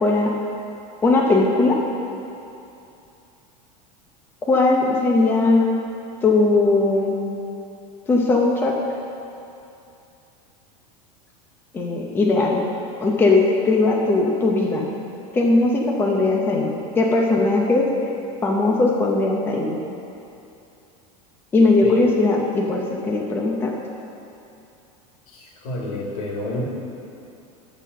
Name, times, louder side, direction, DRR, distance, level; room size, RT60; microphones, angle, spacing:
voice 1, 0.0-0.3 1.0-1.8 4.4-5.7 6.2-7.2 8.1-8.7 11.7-12.6 13.0-14.9 15.3-17.9 18.4-19.8 21.5-23.8, left 3 dB, 10° left, -1 dB, 0.6 m, -19 dB
voice 2, 25.3-26.6, left 2 dB, 85° left, -2 dB, 2.2 m, -30 dB
12.5 x 4.2 x 6.7 m, 2.7 s
supercardioid pair, 170°, 18 cm